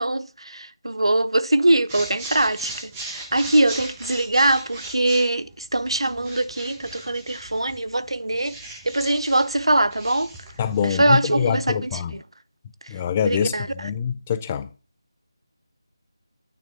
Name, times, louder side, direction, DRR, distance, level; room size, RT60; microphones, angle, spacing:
voice 1, 0.0-8.5 8.8-10.3 10.8-12.2 13.2-13.7, right 1 dB, 85° right, 0.5 m, -22 dB
sound 1, 1.9-10.9, right 2 dB, 15° right, 1.0 m, -39 dB
voice 2, 10.6-12.2 12.9-14.7, left 8 dB, 15° left, 0.3 m, -25 dB
9.1 x 3.5 x 5.7 m
figure-of-eight pair, 165°, 3 cm